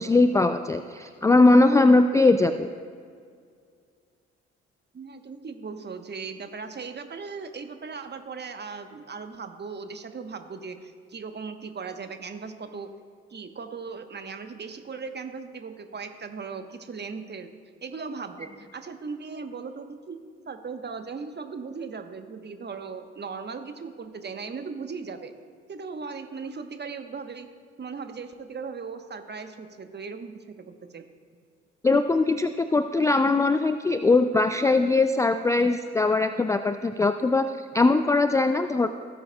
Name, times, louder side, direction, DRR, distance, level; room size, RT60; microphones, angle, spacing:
voice 1, 0.0-2.7 31.8-38.9, left 3 dB, 10° left, 9 dB, 0.3 m, -21 dB
voice 2, 4.9-12.9 13.3-17.5 17.8-25.3 25.7-27.5 27.8-31.0, right 5 dB, 30° right, 8 dB, 1.0 m, -38 dB
17.5 x 7.8 x 2.3 m, 2.1 s
hypercardioid pair, 50°, 35 cm